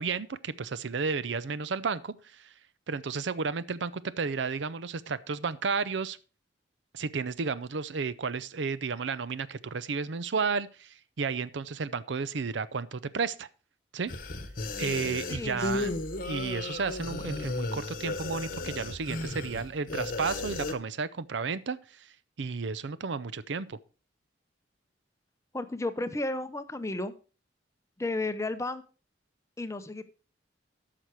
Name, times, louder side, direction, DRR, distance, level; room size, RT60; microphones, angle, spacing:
voice 1, 0.0-2.5 2.9-6.2 6.9-13.5 13.9-14.1 14.8-16.0 16.3-23.8, right 5 dB, 70° right, 0.5 m, -32 dB
sound 1, 14.1-20.7, left 2 dB, 45° left, 1.0 m, -34 dB
voice 2, 15.3-15.9 25.5-27.1 28.0-28.8 29.6-30.0, left 2 dB, 15° left, 0.6 m, -33 dB
13.0 x 5.9 x 4.6 m
head